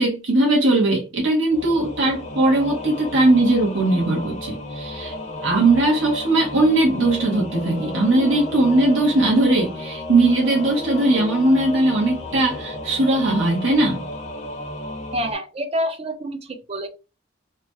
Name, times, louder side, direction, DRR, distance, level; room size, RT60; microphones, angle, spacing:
voice 1, 0.0-5.1 5.4-14.0, right 2 dB, 80° right, 0.9 m, -19 dB
Singing / Musical instrument, 1.5-15.3, left 2 dB, 35° left, 0.6 m, -33 dB
voice 2, 15.1-16.9, equal, 30° right, 0.4 m, -27 dB
2.8 x 2.2 x 2.8 m
head